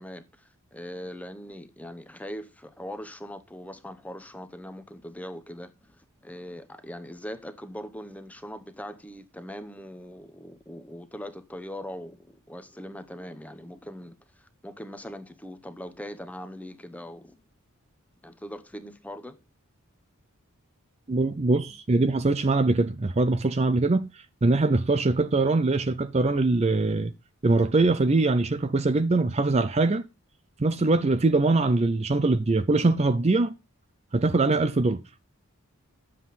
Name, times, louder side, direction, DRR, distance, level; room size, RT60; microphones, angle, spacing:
voice 1, 0.0-17.4 18.2-19.4, equal, 5° left, 0.8 m, -41 dB
voice 2, 21.1-27.1 27.4-30.0 30.6-33.5 34.1-35.0, right 3 dB, 30° right, 0.5 m, -23 dB
11.0 x 7.5 x 4.1 m
head